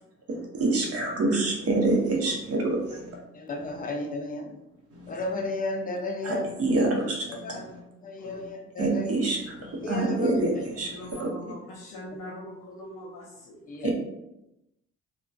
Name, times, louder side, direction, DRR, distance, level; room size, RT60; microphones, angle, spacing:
voice 1, 0.6-3.2 3.5-3.8 4.9-5.4 6.2-7.8 8.2-8.5 8.8-11.3 13.8-13.9, right 2 dB, 50° right, 0 dB, 0.8 m, -27 dB
voice 2, 3.3-4.6 5.1-6.5 7.3-7.6 8.0-9.1 9.8-10.4 13.7-13.9, left 2 dB, 30° left, 3 dB, 0.5 m, -33 dB
voice 3, 10.9-13.6, left 1 dB, 80° left, -3 dB, 0.6 m, -42 dB
2.3 x 2.2 x 2.4 m, 0.88 s
cardioid pair, 90°, 30 cm